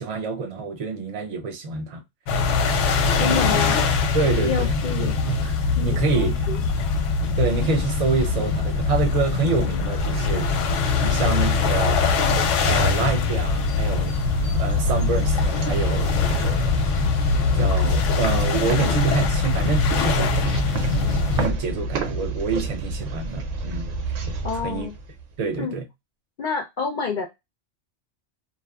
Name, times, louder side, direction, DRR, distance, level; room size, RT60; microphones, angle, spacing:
voice 1, 0.0-2.0 3.2-3.6 4.1-6.5 7.4-10.5 11.0-12.1 12.6-14.1 14.6-16.8 17.5-24.2 24.6-24.9 25.4-25.8, right 4 dB, 60° right, 0.4 m, -27 dB
sound 1, 2.3-21.5, left 4 dB, 90° left, 0.9 m, -22 dB
voice 2, 3.2-3.8 4.4-5.2 5.8-6.7 24.4-24.9 25.6-25.7 26.4-27.3, left 6 dB, 60° left, 0.5 m, -28 dB
sound 2, 13.7-25.5, right 2 dB, 85° right, 1.0 m, -30 dB
2.7 x 2.4 x 2.2 m
omnidirectional pair, 1.2 m